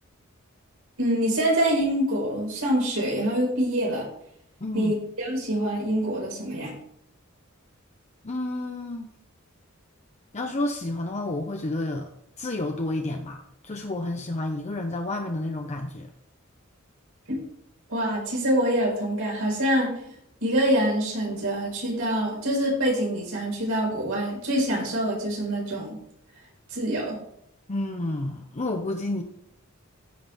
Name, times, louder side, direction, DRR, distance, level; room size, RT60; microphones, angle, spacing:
voice 1, 1.0-4.1 4.7-6.7 17.3-17.4 17.9-19.9 20.4-26.0 26.7-27.2, right 1 dB, 85° right, -3 dB, 4.5 m, -25 dB
voice 2, 4.6-4.9 8.2-9.1 10.3-12.1 12.4-16.1 27.7-29.2, left 2 dB, 35° left, 3 dB, 0.7 m, -30 dB
14.5 x 5.8 x 3.5 m, 0.73 s
head